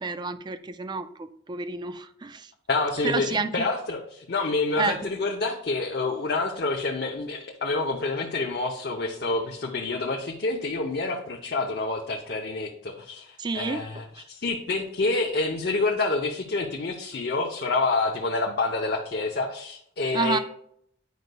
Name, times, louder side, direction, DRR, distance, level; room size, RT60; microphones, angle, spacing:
voice 1, 0.0-2.5 3.0-3.7 4.7-5.1 13.4-14.2 20.1-20.4, right 4 dB, 25° right, 11 dB, 0.4 m, -30 dB
voice 2, 2.7-3.3 3.5-20.4, left 3 dB, 60° left, 0 dB, 0.7 m, -28 dB
9.3 x 5.2 x 2.2 m, 0.69 s
head